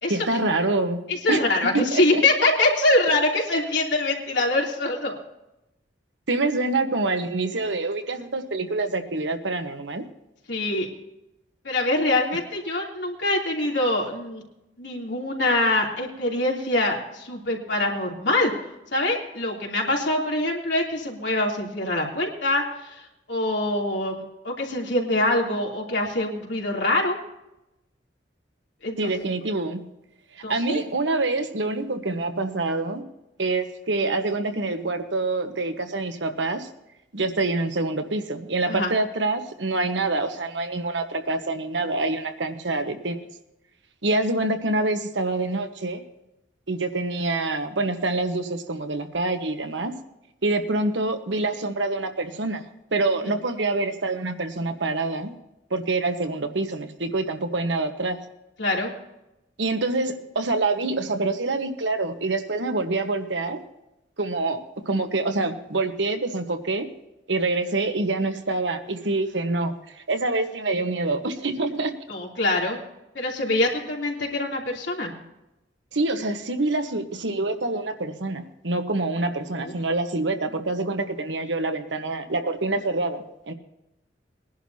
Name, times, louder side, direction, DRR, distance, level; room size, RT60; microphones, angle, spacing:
voice 1, 0.1-1.4 1.7-2.2 6.3-10.1 29.0-29.8 30.3-33.0 33.4-36.7 37.1-43.2 44.0-46.0 46.7-49.9 50.4-52.6 52.9-55.3 55.7-58.2 59.6-63.6 64.2-64.6 64.8-66.9 67.3-71.9 75.9-83.5, right 2 dB, 90° right, 7 dB, 1.3 m, -26 dB
voice 2, 1.1-5.2 10.5-10.9 11.6-14.4 14.8-18.5 18.9-27.2 28.8-29.1 30.4-30.8 38.7-38.9 58.6-58.9 72.1-72.8 73.1-75.1 79.6-79.7, left 2 dB, 75° left, -1 dB, 3.2 m, -24 dB
21.5 x 11.0 x 2.8 m, 0.91 s
head